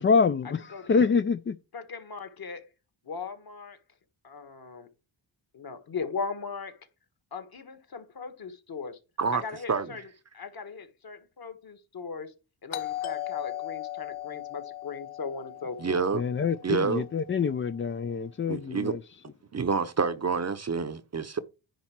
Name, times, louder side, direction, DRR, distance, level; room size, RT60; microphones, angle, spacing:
voice 1, 0.0-1.6 16.1-19.0, left 5 dB, 30° left, 0.4 m, -26 dB
voice 2, 0.7-1.1 1.7-2.7 3.0-3.8 4.2-4.9 5.5-6.8 7.3-9.0 9.3-10.0 10.3-12.3 12.6-16.0, left 5 dB, 50° left, 1.7 m, -38 dB
Doorbell, 12.7-17.3, left 14 dB, 85° left, 1.1 m, -38 dB
voice 3, 15.8-16.2 16.6-17.1 18.5-19.0 19.5-21.4, right 5 dB, 35° right, 0.8 m, -28 dB
10.0 x 4.1 x 6.0 m
wide cardioid pair, 115°, 47 cm